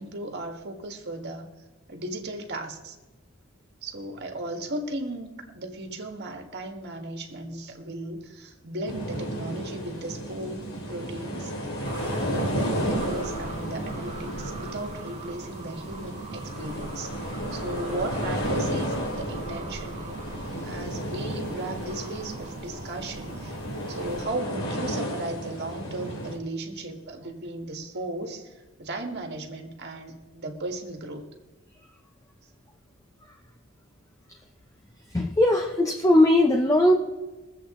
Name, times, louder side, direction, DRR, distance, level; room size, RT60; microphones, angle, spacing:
voice 1, 0.0-1.5 1.9-3.0 3.8-10.6 10.9-20.2 20.6-23.6 23.9-31.3, right 2 dB, 55° right, 4 dB, 1.7 m, -36 dB
sound 1, 8.8-26.4, equal, 90° left, 2.9 m, -33 dB
sound 2, 11.8-24.3, right 3 dB, 35° right, 0.8 m, -42 dB
voice 2, 35.1-36.9, left 1 dB, 15° left, 2 dB, 0.8 m, -19 dB
22.5 x 8.0 x 3.8 m, 1.2 s
head